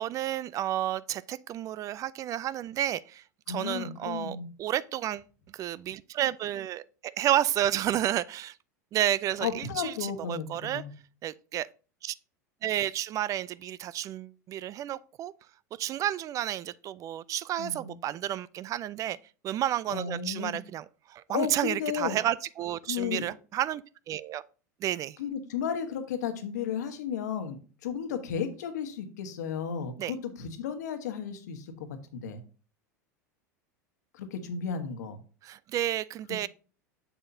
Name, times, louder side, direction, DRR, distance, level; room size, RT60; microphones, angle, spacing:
voice 1, 0.0-5.2 5.5-8.5 8.9-10.8 11.2-11.7 12.0-12.1 12.6-15.3 15.8-19.2 19.4-24.4 24.8-25.2 30.0-30.1 35.4-36.5, right 12 dB, 35° right, 0.3 m, -31 dB
voice 2, 3.5-4.5 9.4-10.9 17.6-17.9 19.9-20.6 21.3-22.1 22.9-23.2 25.2-31.9 32.1-32.4 34.1-35.2, left 7 dB, 70° left, 1.3 m, -34 dB
7.1 x 7.0 x 2.7 m
hypercardioid pair, 90°, 9 cm